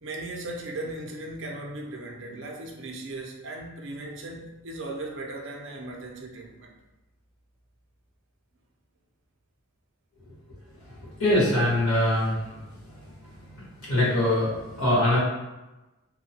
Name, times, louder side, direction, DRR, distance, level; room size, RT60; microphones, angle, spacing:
voice 1, 0.0-6.8, right 2 dB, 55° right, 0 dB, 0.5 m, -37 dB
voice 2, 11.2-12.4 13.8-14.5 14.8-15.2, left 1 dB, 75° left, -8 dB, 1.5 m, -22 dB
2.9 x 2.2 x 2.8 m, 1.1 s
head